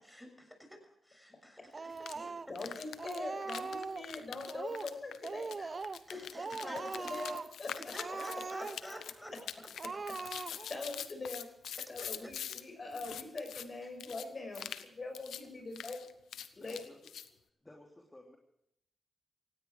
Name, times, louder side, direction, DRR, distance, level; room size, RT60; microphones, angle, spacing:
voice 1, 0.0-2.8 6.1-7.2 7.9-9.7 12.2-12.3, equal, 5° left, 6.6 m, -50 dB
Speech, 1.7-2.7 3.0-4.1 4.5-5.0 5.2-6.1 6.3-7.5 7.9-9.0 9.4-9.5 9.8-10.8, right 4 dB, 45° right, 0.6 m, -41 dB
sound 1, 2.0-2.1 2.5-12.6 12.9-13.6 14.0-14.2 14.5-14.9 15.1-15.4 15.7-17.3, left 9 dB, 85° left, 0.9 m, -44 dB
voice 2, 2.1-5.8 6.1-6.3 6.6-7.9 9.8-9.9 10.4-11.6 11.9-16.1 16.6-16.8, left 3 dB, 45° left, 6.1 m, -43 dB
voice 3, 16.5-17.0 17.6-18.4, left 1 dB, 20° left, 3.3 m, -54 dB
18.5 x 16.0 x 4.7 m
supercardioid pair, 50°, 0 cm